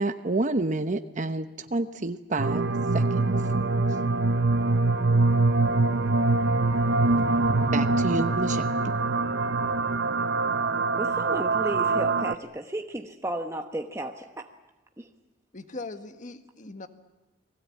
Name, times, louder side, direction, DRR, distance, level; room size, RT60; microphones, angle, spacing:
voice 1, 0.0-2.6 2.9-3.2 7.7-8.7, right 2 dB, 45° right, 9 dB, 0.9 m, -28 dB
sound 1, 2.4-12.3, right 3 dB, 75° right, 0.9 m, -24 dB
voice 2, 10.9-14.5 15.0-15.1, right 1 dB, 15° right, 4 dB, 1.1 m, -34 dB
voice 3, 15.5-16.9, left 3 dB, 45° left, 8 dB, 1.6 m, -40 dB
29.5 x 20.5 x 8.6 m, 1.0 s
head